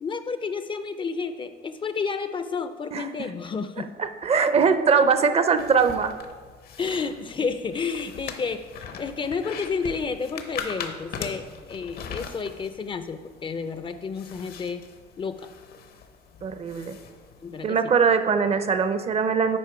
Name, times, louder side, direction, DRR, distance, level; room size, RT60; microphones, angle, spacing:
voice 1, 0.0-3.9 6.8-8.7 9.0-14.8 15.2-15.5 17.4-17.8, left 5 dB, 30° left, 11 dB, 0.4 m, -31 dB
voice 2, 4.0-6.1 16.4-17.0 17.6-19.6, right 5 dB, 40° right, 9 dB, 0.6 m, -21 dB
sound 1, 5.6-17.7, left 6 dB, 65° left, 0.8 m, -41 dB
8.5 x 5.0 x 4.8 m, 1.5 s
cardioid pair, 110°, 17 cm